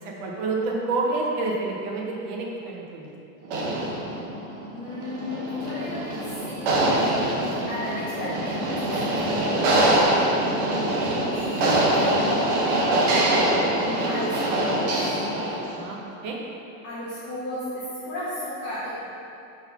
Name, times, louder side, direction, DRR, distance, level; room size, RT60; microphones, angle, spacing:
voice 1, 0.0-3.1 9.3-11.0 15.7-16.4, right 3 dB, 25° right, -2 dB, 0.5 m, -30 dB
sound 1, 3.4-15.8, right 1 dB, 55° right, 1.1 m, -24 dB
voice 2, 4.7-7.1 7.7-9.3 9.6-9.7 11.3-12.9 13.3-15.2 16.8-18.9, left 1 dB, 30° left, -11 dB, 1.1 m, -34 dB
4.4 x 3.9 x 5.5 m, 2.7 s
supercardioid pair, 180°, 44 cm